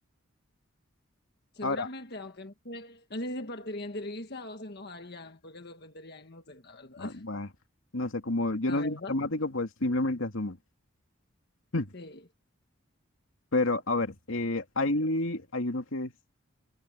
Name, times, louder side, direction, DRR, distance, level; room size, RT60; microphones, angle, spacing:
voice 1, 1.5-7.2 8.7-9.2 11.9-12.2, left 1 dB, 50° left, 1.6 m, -40 dB
voice 2, 7.0-7.5 7.9-10.6 11.7-11.9 13.5-16.1, left 2 dB, 80° left, 2.5 m, -29 dB
head